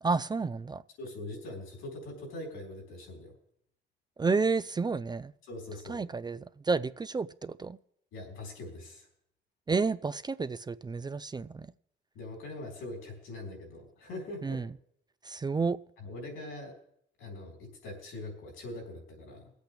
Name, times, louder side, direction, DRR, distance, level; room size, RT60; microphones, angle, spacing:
voice 1, 0.0-0.8 4.2-5.3 5.9-7.8 9.7-11.7 14.4-14.7 15.2-15.8, right 4 dB, 20° right, 0.4 m, -31 dB
voice 2, 1.0-3.4 5.5-6.0 8.1-9.1 12.1-14.6 16.0-16.7 17.2-19.5, left 2 dB, 90° left, 4.2 m, -42 dB
23.0 x 8.3 x 3.4 m
cardioid pair, 90°, 20 cm